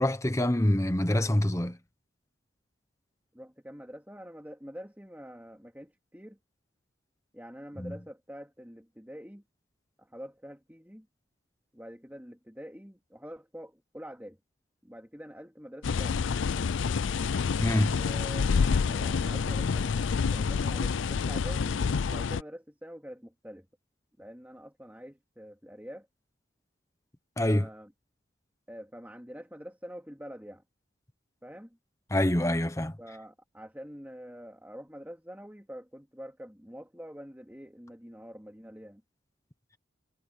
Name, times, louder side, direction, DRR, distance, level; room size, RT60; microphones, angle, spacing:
voice 1, 0.0-1.8 7.8-7.9 17.6-18.0 27.4-27.7 32.1-33.0, left 1 dB, 15° left, 1.0 m, -26 dB
voice 2, 3.3-6.4 7.3-9.4 10.0-11.1 11.7-14.4 14.8-16.3 17.9-21.8 22.1-23.6 24.2-26.1 27.4-27.9 28.7-30.6 31.4-31.8 33.0-39.0, equal, 10° right, 3.4 m, -46 dB
sound 1, 15.8-22.4, left 5 dB, 75° left, 0.4 m, -28 dB
head